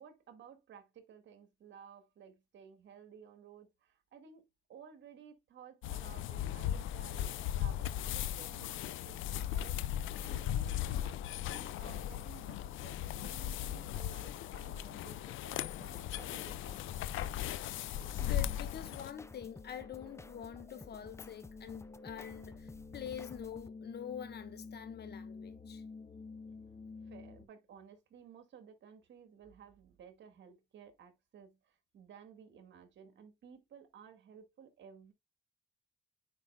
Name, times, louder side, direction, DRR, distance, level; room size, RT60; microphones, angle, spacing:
voice 1, 0.0-4.4 4.7-16.9 27.0-35.1, right 7 dB, 65° right, 1.8 m, -56 dB
sound 1, 5.8-19.1, left 11 dB, 80° left, 0.5 m, -37 dB
sound 2, 15.7-23.7, left 3 dB, 15° left, 0.4 m, -55 dB
sound 3, 15.9-27.4, left 4 dB, 30° left, 1.7 m, -52 dB
voice 2, 18.2-25.8, left 9 dB, 55° left, 1.2 m, -45 dB
9.6 x 5.0 x 2.2 m
cardioid pair, 90°, 20 cm